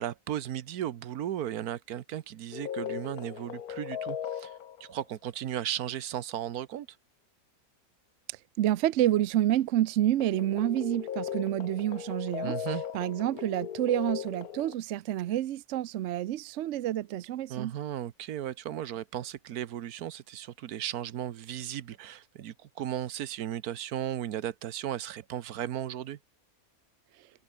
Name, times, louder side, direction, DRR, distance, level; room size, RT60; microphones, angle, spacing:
voice 1, 0.0-4.5 4.8-6.9 12.4-12.8 17.5-26.2, right 11 dB, 85° right, 1.4 m, -35 dB
sound 1, 2.5-4.9 10.2-14.7, left 9 dB, 80° left, 1.6 m, -37 dB
voice 2, 8.6-12.6 12.9-17.7, right 13 dB, 65° right, 0.8 m, -28 dB
omnidirectional pair, 1.5 m